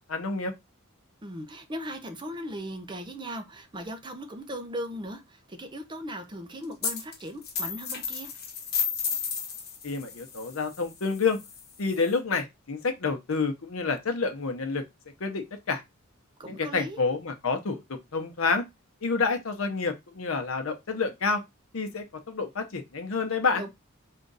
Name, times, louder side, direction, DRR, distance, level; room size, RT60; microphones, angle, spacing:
voice 1, 0.1-0.5 9.8-11.4 11.8-14.8 15.2-15.8 16.5-17.8 18.1-18.6 19.0-21.4 21.7-23.6, left 4 dB, 80° left, 0.8 m, -28 dB
voice 2, 1.2-8.3 16.4-17.0 23.5-23.7, equal, 20° right, 0.6 m, -38 dB
sound 1, 6.8-7.1 7.4-12.1, left 7 dB, 50° left, 1.0 m, -33 dB
3.7 x 2.5 x 3.9 m
head